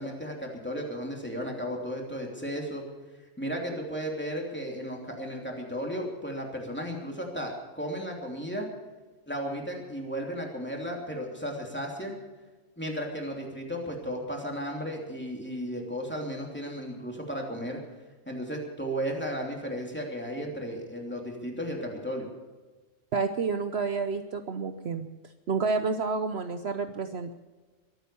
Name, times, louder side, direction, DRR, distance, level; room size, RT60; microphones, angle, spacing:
voice 1, 0.0-2.8 3.4-8.7 9.3-12.2 12.8-17.8 18.3-22.3, equal, 10° left, 0 dB, 2.9 m, -34 dB
voice 2, 23.1-25.1 25.5-27.3, right 4 dB, 60° right, 8 dB, 1.0 m, -29 dB
23.0 x 9.0 x 6.9 m, 1.3 s
omnidirectional pair, 1.4 m